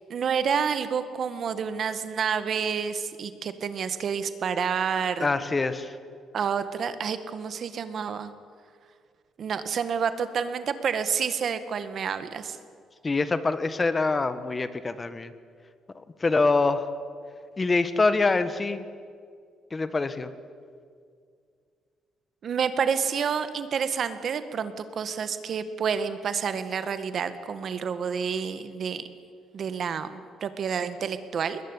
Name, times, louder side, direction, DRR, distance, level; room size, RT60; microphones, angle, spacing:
voice 1, 0.1-5.3 6.3-8.3 9.4-12.6 22.4-29.0 29.5-31.6, right 6 dB, 55° right, 11 dB, 1.8 m, -29 dB
voice 2, 5.2-5.9 13.0-15.3 15.9-16.9 17.6-18.8 19.7-20.3, left 3 dB, 25° left, 12 dB, 1.6 m, -25 dB
21.0 x 20.5 x 10.0 m, 2.2 s
cardioid pair, 90°, 0 cm